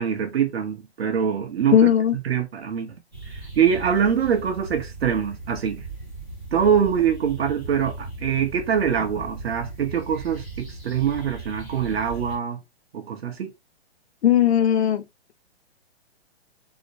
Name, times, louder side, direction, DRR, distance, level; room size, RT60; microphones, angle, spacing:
voice 1, 0.0-1.8 2.2-2.9 3.6-5.8 6.5-12.6 12.9-13.5, right 8 dB, 65° right, 1.2 m, -24 dB
voice 2, 1.7-2.2 14.2-15.0, left 10 dB, 70° left, 0.6 m, -17 dB
sound 1, 3.1-12.4, right 3 dB, 5° right, 0.3 m, -38 dB
4.0 x 2.1 x 2.8 m
hypercardioid pair, 160°, 33 cm